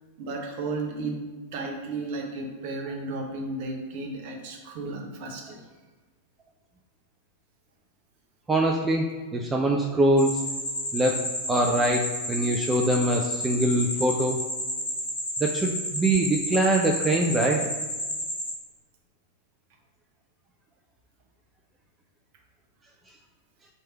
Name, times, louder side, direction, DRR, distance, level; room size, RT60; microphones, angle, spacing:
voice 1, 0.2-1.2 1.5-5.7, right 3 dB, 50° right, 1 dB, 0.7 m, -34 dB
voice 2, 8.5-10.4 10.9-11.2 11.5-14.4 15.4-17.6, right 1 dB, 15° right, 1 dB, 0.4 m, -23 dB
sound 1, 10.2-18.5, equal, 55° left, 1.2 m, -31 dB
3.1 x 2.8 x 4.5 m, 1.4 s
figure-of-eight pair, 90°, 0 cm